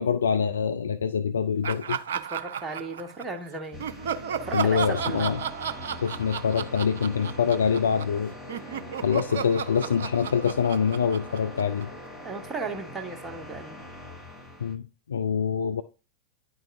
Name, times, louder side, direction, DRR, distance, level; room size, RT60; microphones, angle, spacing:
voice 1, 0.0-2.0 4.5-5.4 6.0-8.3 9.0-11.9 14.6-15.8, left 7 dB, 70° left, 0.4 m, -25 dB
Laughter, 1.6-3.4 3.8-8.2 8.5-12.1, right 7 dB, 60° right, 0.5 m, -33 dB
voice 2, 2.2-3.8 4.4-5.4 12.2-13.8, right 3 dB, 20° right, 1.2 m, -36 dB
sound 1, 3.7-14.7, left 1 dB, 10° left, 1.3 m, -42 dB
10.0 x 4.7 x 2.5 m
figure-of-eight pair, 90°, 0 cm